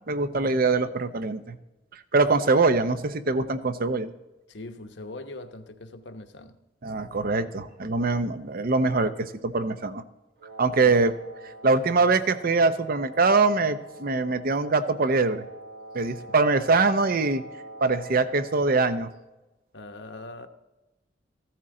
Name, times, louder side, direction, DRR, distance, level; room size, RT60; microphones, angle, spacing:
voice 1, 0.1-1.6 1.9-4.1 6.8-10.0 10.6-11.1 11.6-15.4 15.9-17.4 17.8-19.1, right 3 dB, 55° right, 11 dB, 0.7 m, -23 dB
voice 2, 4.5-6.6 10.8-10.9 16.0-16.2 19.7-20.5, left 2 dB, 75° left, 7 dB, 1.0 m, -41 dB
Wind instrument woodwind instrument, 10.4-18.7, right 1 dB, 90° right, 1.5 m, -45 dB
15.0 x 12.5 x 3.8 m, 1.0 s
head